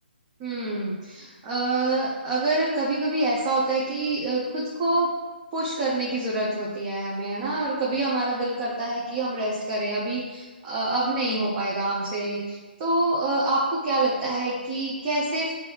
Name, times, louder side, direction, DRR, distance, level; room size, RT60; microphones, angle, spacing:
voice 1, 0.4-5.1 5.5-15.5, right 2 dB, 30° right, -5 dB, 0.7 m, -26 dB
5.3 x 2.7 x 3.2 m, 1.3 s
figure-of-eight pair, 140°, 6 cm